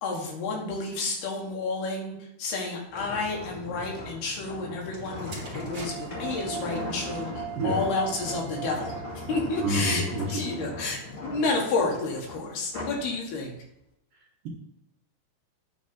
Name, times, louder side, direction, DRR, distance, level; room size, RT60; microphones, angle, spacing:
voice 1, 0.0-10.0 10.3-13.6, left 3 dB, 70° left, -1 dB, 3.4 m, -30 dB
sound 1, 2.9-13.1 13.5-13.8, left 2 dB, 35° left, 2.5 m, -39 dB
sound 2, 4.9-8.7 9.5-9.8, right 1 dB, 35° right, 2.2 m, -46 dB
sound 3, 5.9-11.1, right 12 dB, 85° right, 2.7 m, -41 dB
voice 2, 9.6-10.7, right 1 dB, 65° right, -2 dB, 2.5 m, -29 dB
9.6 x 4.2 x 5.8 m, 0.82 s
omnidirectional pair, 5.0 m